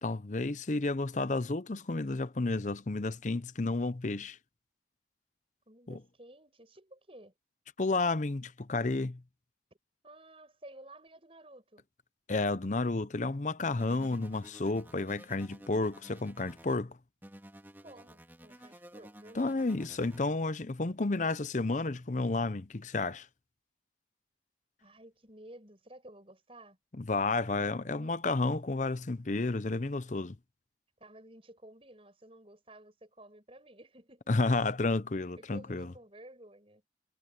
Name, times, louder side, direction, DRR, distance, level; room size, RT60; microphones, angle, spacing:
voice 1, 0.0-4.4 5.9-6.0 7.8-9.2 12.3-17.0 19.3-23.3 27.0-30.4 34.3-35.9, left 3 dB, 40° left, 0.7 m, -31 dB
voice 2, 5.7-7.3 10.0-11.8 17.8-19.6 24.8-26.8 27.8-28.2 31.0-34.3 35.4-36.9, right 1 dB, 30° right, 7.3 m, -53 dB
sound 1, 13.8-16.8 17.2-20.2, right 1 dB, 10° right, 2.5 m, -53 dB
head